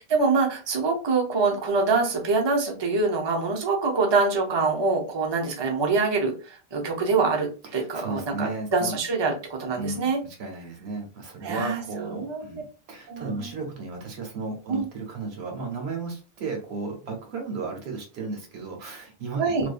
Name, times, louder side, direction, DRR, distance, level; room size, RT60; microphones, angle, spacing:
voice 1, 0.1-10.2 11.4-11.8 12.2-12.6 13.1-13.5 14.7-14.9 19.4-19.7, right 4 dB, 30° right, 1 dB, 0.6 m, -25 dB
voice 2, 7.6-9.0 9.8-19.7, right 3 dB, 80° right, 2 dB, 1.1 m, -34 dB
2.6 x 2.3 x 2.3 m, 0.34 s
omnidirectional pair, 1.1 m